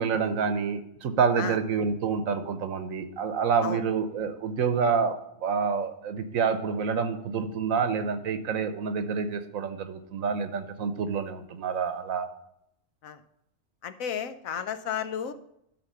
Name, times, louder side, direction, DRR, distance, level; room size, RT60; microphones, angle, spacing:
voice 1, 0.0-12.3, right 6 dB, 90° right, 9 dB, 1.3 m, -28 dB
voice 2, 13.8-15.3, left 8 dB, 85° left, 10 dB, 1.1 m, -33 dB
12.5 x 4.2 x 5.5 m, 0.77 s
omnidirectional pair, 1.4 m